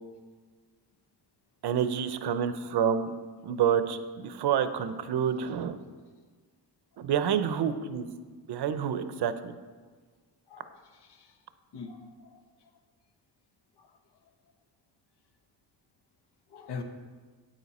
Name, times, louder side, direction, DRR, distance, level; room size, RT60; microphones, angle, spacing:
voice 1, 1.6-3.1 3.4-5.8 7.0-8.1 8.5-9.5, right 8 dB, 75° right, 11 dB, 0.7 m, -28 dB
voice 2, 11.7-12.4 13.8-13.9 16.5-16.8, left 5 dB, 80° left, 5 dB, 1.1 m, -42 dB
9.2 x 9.1 x 4.2 m, 1.5 s
wide cardioid pair, 130°, 40 cm